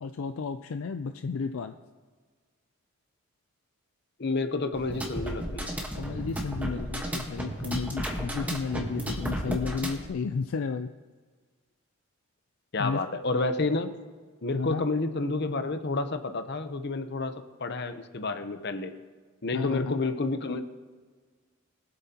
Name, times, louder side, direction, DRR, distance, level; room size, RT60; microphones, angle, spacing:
voice 1, 0.0-1.7 5.9-10.9 12.8-13.0 14.5-14.9 19.5-20.0, left 5 dB, 70° left, 7 dB, 0.4 m, -32 dB
voice 2, 4.2-5.7 12.7-13.9 14.4-17.3 17.6-18.9 19.4-20.6, left 3 dB, 50° left, 8 dB, 0.8 m, -29 dB
sound 1, 4.7-10.1, right 1 dB, 5° right, 1.2 m, -33 dB
22.5 x 7.9 x 2.9 m, 1.5 s
head